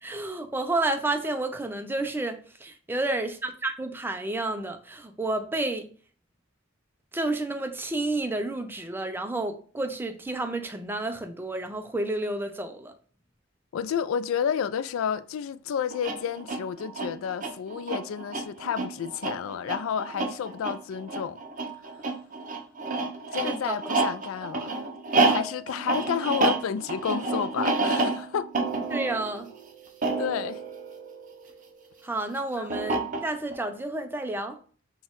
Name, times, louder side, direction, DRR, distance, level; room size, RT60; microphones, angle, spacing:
voice 1, 0.0-5.9 7.1-12.9 23.3-23.8 28.9-29.5 32.0-33.0 33.2-34.6, right 2 dB, 10° right, 0.4 m, -30 dB
voice 2, 13.7-21.4 23.3-24.8 25.2-28.5 30.2-30.6 32.6-32.7, left 7 dB, 80° left, 0.3 m, -31 dB
sound 1, 15.9-31.7 32.7-33.6, right 3 dB, 40° right, 0.7 m, -29 dB
4.2 x 2.3 x 3.6 m
head